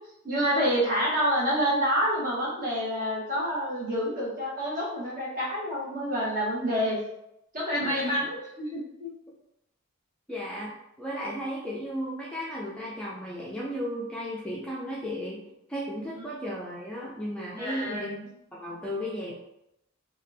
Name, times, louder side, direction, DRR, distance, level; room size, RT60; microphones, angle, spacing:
voice 1, 0.2-7.0 7.5-9.1 17.6-18.1, equal, 45° right, -5 dB, 1.1 m, -28 dB
voice 2, 7.8-8.1 10.3-10.7 11.0-15.4 15.7-19.3, equal, 5° left, -5 dB, 0.4 m, -35 dB
2.8 x 2.4 x 3.3 m, 0.83 s
head